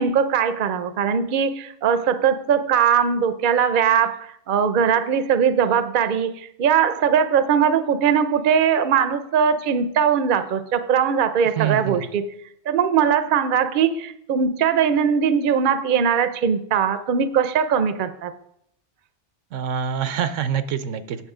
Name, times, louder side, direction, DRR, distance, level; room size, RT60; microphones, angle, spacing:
voice 1, 0.0-12.2 12.7-18.3, right 7 dB, 50° right, 11 dB, 0.7 m, -20 dB
voice 2, 11.4-12.0 19.5-21.2, right 8 dB, 85° right, 12 dB, 1.0 m, -25 dB
9.1 x 7.0 x 4.9 m, 0.72 s
omnidirectional pair, 1.2 m